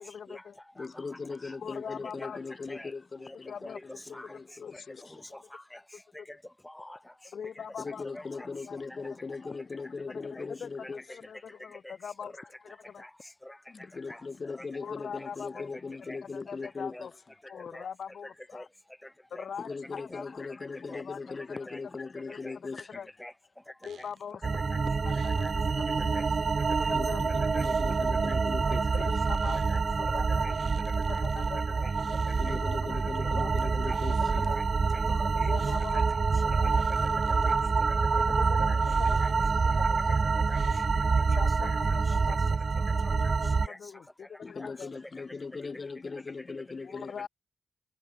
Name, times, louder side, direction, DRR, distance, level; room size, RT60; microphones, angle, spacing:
voice 1, 0.0-0.6 1.5-2.4 3.5-3.8 4.1-4.2 4.6-4.9 7.3-8.0 8.7-8.8 10.0-12.3 12.6-13.1 14.7-15.7 16.3-17.1 17.5-18.7 19.3-20.5 20.8-21.2 22.3-22.4 22.9-23.1 23.8-24.4 25.0-25.5 27.1-27.5 28.0-28.1 28.9-29.6 30.0-30.4 30.9-31.9 32.6-32.7 33.2-33.5 34.2-34.6 35.5-36.0 36.4-36.7 38.0-39.1 39.3-40.2 41.4-42.6 42.9-43.0 43.5-44.9 46.8-47.3, left 7 dB, 70° left, 1.4 m, -42 dB
voice 2, 0.8-5.1 7.8-11.0 13.7-17.1 19.6-22.9 26.9-29.1 32.3-34.5 44.4-47.3, left 4 dB, 40° left, 1.6 m, -39 dB
voice 3, 1.8-2.3 2.7-2.9 3.2-3.4 3.6-3.8 4.1-4.3 4.7-4.8 5.1-5.8 6.3-6.4 6.6-7.0 8.0-8.5 8.9-9.0 10.4-10.5 10.8-10.9 11.8-11.9 12.2-12.3 13.0-13.1 13.4-13.6 14.1-14.2 14.6-14.7 15.2-15.3 15.5-15.8 16.1-16.2 16.9-17.0 17.7-17.8 18.5-18.6 19.3-19.4 20.1-20.2 20.9-21.0 21.7-22.1 22.4-22.5 22.9-23.3 24.7-24.8 25.4-25.5 26.1-26.2 27.5-27.6 28.3-28.4 28.7-29.1 29.7-29.8 30.4-30.5 31.1-31.2 31.8-31.9 32.2-32.6 33.8-34.0 34.5-34.6 34.9-35.5 35.9-36.2 37.4-37.5 38.7-38.8 39.2-39.3 40.5-40.6 41.6-41.8 43.0-43.1 43.6-43.8 44.6-44.7, left 1 dB, 10° left, 1.5 m, -45 dB
sound 1, 23.8-24.3 25.0-25.6 27.6-28.3 28.9-29.8 30.5-31.5 31.9-32.9 33.7-34.4 35.5-36.1 36.5-37.6 38.7-39.5 40.5-41.2, right 8 dB, 80° right, 4.1 m, -55 dB
sound 2, 24.4-43.7, right 4 dB, 45° right, 0.6 m, -27 dB
cardioid pair, 80°, 0 cm